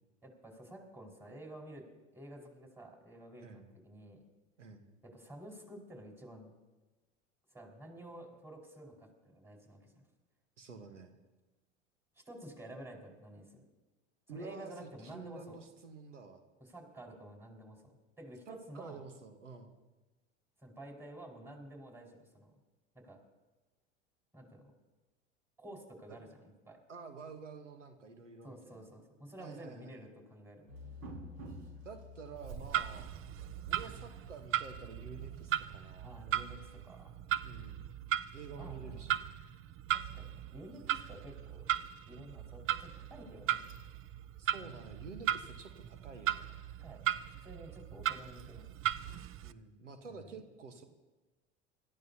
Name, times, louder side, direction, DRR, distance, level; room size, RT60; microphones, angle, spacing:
voice 1, 0.2-1.8 2.1-4.2 5.0-6.5 7.5-9.9 12.1-13.6 14.3-15.6 16.6-19.0 20.6-22.5 22.9-23.2 24.3-24.7 25.6-26.3 26.7-26.8 28.4-30.7 36.0-37.1 38.5-39.2 39.9-41.7 42.1-43.6 46.8-47.0 47.4-48.7 50.1-50.4, right 1 dB, 5° right, -1 dB, 4.8 m, -51 dB
voice 2, 10.6-11.2 14.3-16.4 18.5-19.8 26.1-26.2 26.9-28.9 29.4-29.9 31.8-33.1 33.7-36.1 37.4-37.9 38.3-39.3 44.4-46.5 49.4-50.8, right 4 dB, 90° right, 7 dB, 1.3 m, -49 dB
sound 1, 30.7-37.1, left 1 dB, 60° right, 5.3 m, -52 dB
Clock, 32.4-49.5, right 11 dB, 35° right, 0.6 m, -38 dB
27.0 x 13.5 x 2.8 m, 1.2 s
hypercardioid pair, 80°, 36 cm